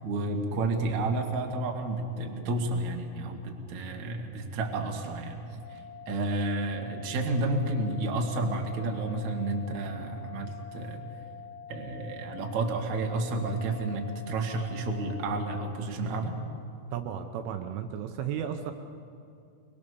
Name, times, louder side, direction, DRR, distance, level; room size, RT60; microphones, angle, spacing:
voice 1, 0.0-5.4 5.7-5.8 6.1-11.0 11.7-16.4, right 2 dB, 50° right, 2 dB, 2.6 m, -31 dB
sound 1, 5.6-15.6, left 7 dB, 75° left, 2.7 m, -46 dB
voice 2, 16.9-18.7, right 9 dB, 80° right, 6 dB, 3.3 m, -34 dB
26.0 x 22.5 x 7.0 m, 2.5 s
omnidirectional pair, 5.9 m